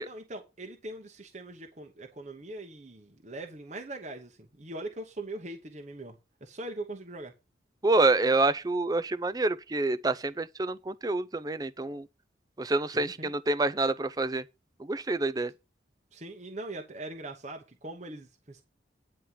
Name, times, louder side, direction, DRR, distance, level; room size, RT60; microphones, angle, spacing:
voice 1, 0.0-7.3 12.9-13.3 16.1-18.6, right 2 dB, 40° right, 1.0 m, -41 dB
voice 2, 7.8-12.1 12.6-14.4 14.8-15.5, right 2 dB, 20° right, 0.5 m, -27 dB
9.7 x 4.3 x 7.6 m
head